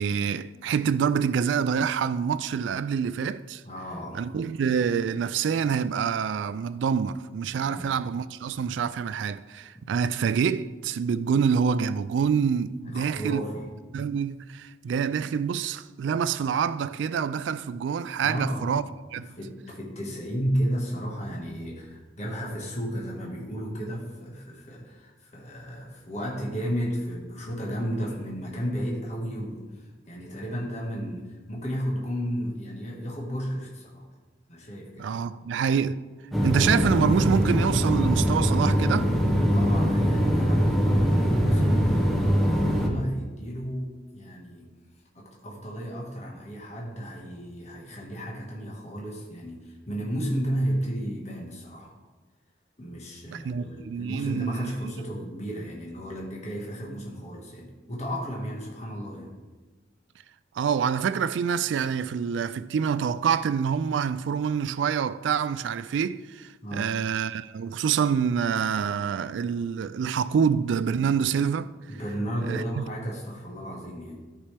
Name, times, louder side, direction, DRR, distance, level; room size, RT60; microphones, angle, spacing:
voice 1, 0.0-3.6 4.1-13.4 13.9-18.8 19.1-19.4 35.0-36.0 36.4-39.1 53.3-54.7 60.6-71.7 72.4-72.8, right 7 dB, 80° right, 0.3 m, -26 dB
voice 2, 3.6-4.3 7.5-7.9 9.7-9.9 12.8-13.7 18.2-18.8 19.2-34.1 34.5-35.2 39.5-44.7 45.1-51.9 52.8-59.3 66.6-67.0 71.9-74.2, equal, 40° left, 1.5 m, -33 dB
sound 1, 36.3-42.9, equal, ahead, 1.2 m, -22 dB
13.0 x 5.6 x 3.4 m
head